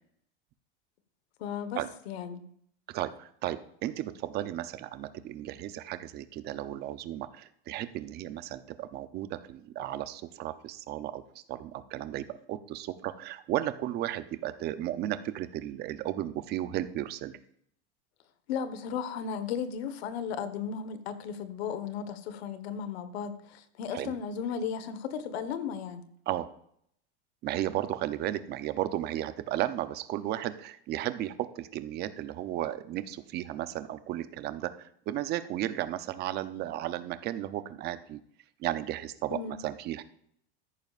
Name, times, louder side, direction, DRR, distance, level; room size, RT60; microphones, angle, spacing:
voice 1, 1.4-1.8 2.1-2.4 18.5-26.0 39.3-39.6, left 7 dB, 75° left, 11 dB, 1.3 m, -35 dB
voice 2, 2.9-17.3 23.9-24.2 26.3-26.5 27.4-38.2 38.6-40.0, right 13 dB, 30° right, 12 dB, 0.6 m, -34 dB
13.5 x 10.5 x 2.5 m, 0.69 s
supercardioid pair, 150°, 32 cm